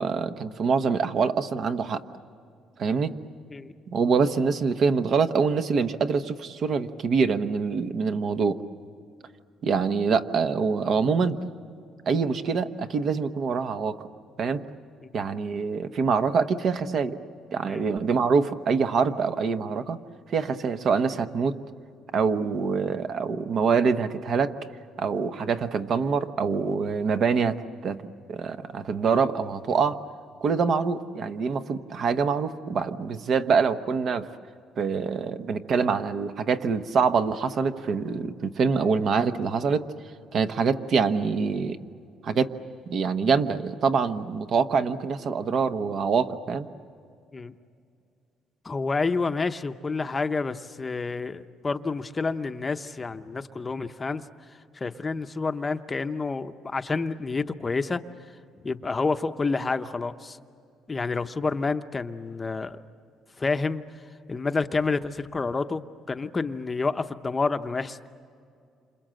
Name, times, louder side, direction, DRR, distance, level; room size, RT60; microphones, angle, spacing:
voice 1, 0.0-2.0 2.8-3.1 3.9-8.6 9.6-11.4 12.1-14.0 14.4-14.6 15.1-17.2 17.5-20.0 20.3-21.6 22.1-24.5 25.0-27.6 27.8-28.0 28.3-30.0 30.4-34.3 34.8-39.9 40.3-41.8 42.2-42.5 42.9-46.7, right 5 dB, 50° right, 9 dB, 1.1 m, -25 dB
voice 2, 48.6-54.2 54.7-58.0 58.6-60.4 60.9-62.8 63.4-63.8 64.3-68.0, left 4 dB, 20° left, 9 dB, 0.8 m, -29 dB
28.5 x 27.0 x 7.7 m, 2.4 s
cardioid pair, 130°, 0 cm